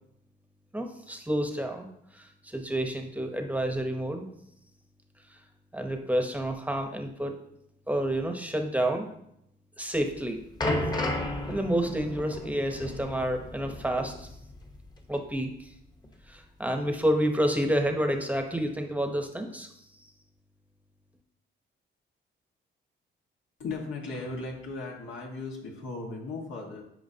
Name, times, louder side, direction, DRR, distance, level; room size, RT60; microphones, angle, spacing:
voice 1, 0.7-1.9 2.1-4.3 5.7-7.4 7.9-9.1 9.8-10.4 11.5-14.3 15.1-15.7 16.3-19.7, right 1 dB, 5° right, 4 dB, 0.8 m, -29 dB
sound 1, 10.0-14.9 15.1-15.3 16.0-16.1, left 1 dB, 20° left, 1.0 m, -33 dB
voice 2, 23.6-26.8, left 3 dB, 80° left, 0 dB, 1.6 m, -37 dB
9.4 x 4.8 x 2.8 m, 0.78 s
cardioid pair, 90°, 20 cm